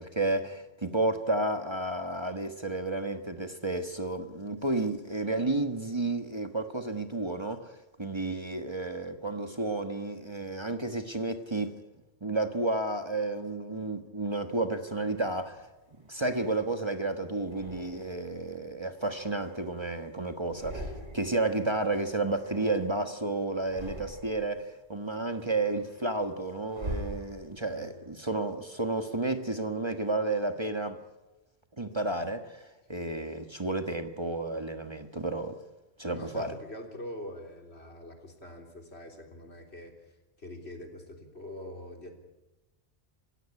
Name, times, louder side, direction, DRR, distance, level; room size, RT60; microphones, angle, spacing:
voice 1, 0.0-11.7 12.2-15.6 16.1-31.0 31.8-35.5 36.0-36.6, right 2 dB, 25° right, 7 dB, 1.5 m, -31 dB
sound 1, 15.5-16.7 17.4-18.3 18.8-20.1 20.4-21.5 21.7-23.1 23.5-24.6 25.0-27.8, right 1 dB, 75° right, 4.9 m, -44 dB
voice 2, 36.1-39.9 40.4-42.2, left 1 dB, 70° left, 3 dB, 3.7 m, -44 dB
27.0 x 16.0 x 9.9 m, 1.0 s
omnidirectional pair, 1.1 m